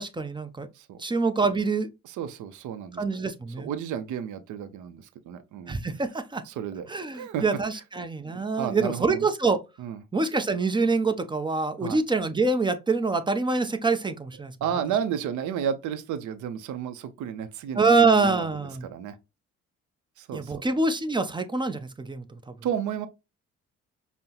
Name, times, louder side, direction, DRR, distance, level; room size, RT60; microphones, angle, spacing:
voice 1, 0.0-0.7 1.0-1.9 3.0-3.7 5.7-6.4 6.9-9.6 10.1-14.5 17.7-18.9 20.3-22.2, right 3 dB, 15° right, 0.5 m, -25 dB
voice 2, 2.0-3.0 3.6-5.8 6.5-6.9 7.1-7.4 8.2-9.3 9.8-10.0 11.8-12.0 14.6-18.5 18.8-19.2 20.2-20.6 22.6-23.1, right 8 dB, 75° right, 0.6 m, -32 dB
5.3 x 2.1 x 2.8 m
cardioid pair, 90°, 30 cm